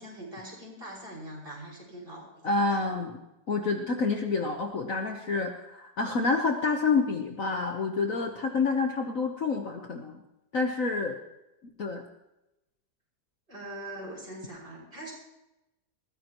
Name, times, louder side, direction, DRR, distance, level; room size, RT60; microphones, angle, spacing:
voice 1, 0.0-2.8 13.5-15.1, right 1 dB, 30° right, -3 dB, 6.1 m, -42 dB
voice 2, 2.4-3.2 3.5-10.2 10.5-11.2 11.8-12.0, left 4 dB, 50° left, 4 dB, 1.4 m, -28 dB
20.5 x 16.0 x 3.0 m, 0.93 s
omnidirectional pair, 1.9 m